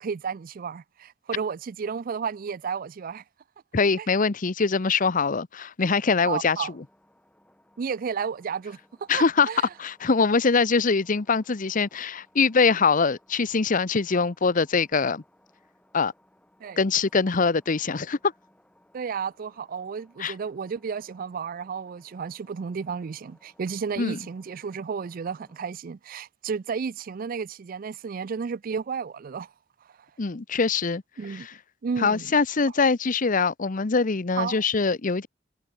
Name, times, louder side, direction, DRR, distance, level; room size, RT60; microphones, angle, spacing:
voice 1, 0.0-3.2 4.0-4.1 6.3-6.7 7.8-9.7 16.6-16.8 18.9-29.5 31.2-31.5 31.8-32.3 34.4-34.6, right 6 dB, 45° right, 0.4 m, -32 dB
voice 2, 3.7-6.8 9.1-9.5 9.8-15.2 15.9-16.1 16.8-18.3 20.2-20.3 24.0-24.2 30.2-31.0 31.3-31.5 32.0-35.3, left 4 dB, 45° left, 0.8 m, -23 dB
sound 1, 6.0-25.7, left 1 dB, 5° left, 4.7 m, -63 dB
head